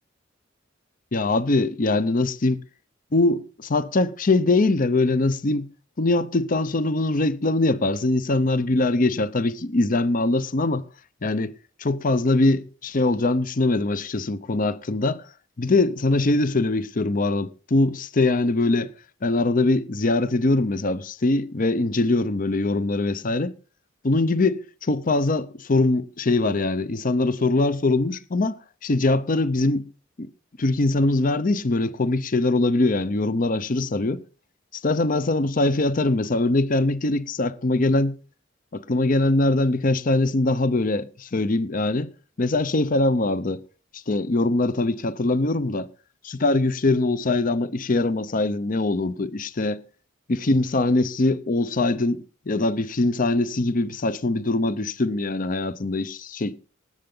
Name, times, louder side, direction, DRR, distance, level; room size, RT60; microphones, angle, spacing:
voice 1, 1.1-2.6 3.1-5.7 6.0-10.8 11.2-15.2 15.6-18.9 19.2-23.5 24.0-29.9 30.6-34.2 34.8-38.2 38.7-42.1 42.4-43.6 43.9-45.9 46.2-49.8 50.3-56.6, left 2 dB, 45° left, 0.7 m, -22 dB
18.5 x 7.8 x 3.8 m
head